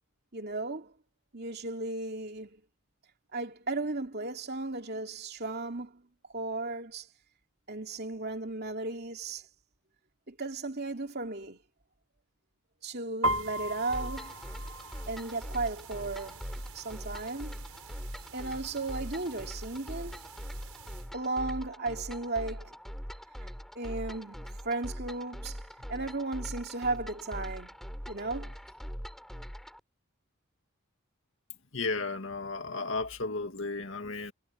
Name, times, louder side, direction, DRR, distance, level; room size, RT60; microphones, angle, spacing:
voice 1, 0.3-0.9 1.3-2.6 3.3-6.0 6.3-7.1 7.7-9.5 10.3-11.6 12.8-14.4 15.1-16.4 16.7-17.6 18.3-20.2 21.1-22.7 23.7-25.6 25.9-27.8 28.1-28.6, right 2 dB, 50° right, 2.9 m, -35 dB
sound 1, 13.2-21.0, right 1 dB, 80° right, 5.0 m, -39 dB
sound 2, 13.9-29.8, equal, ahead, 7.8 m, -42 dB
voice 2, 31.7-34.3, left 3 dB, 60° left, 2.2 m, -34 dB
head